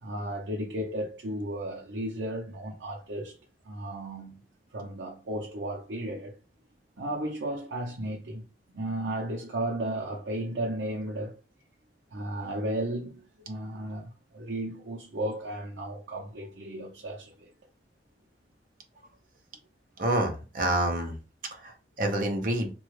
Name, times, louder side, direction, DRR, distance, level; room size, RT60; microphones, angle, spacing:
voice 1, 0.0-3.3 3.6-4.4 4.7-6.3 7.0-8.4 8.7-11.4 12.1-17.5, right 1 dB, 85° right, 0.6 m, -34 dB
voice 2, 20.0-21.1 21.5-22.7, right 1 dB, 50° right, 0.7 m, -28 dB
3.2 x 2.3 x 3.2 m
head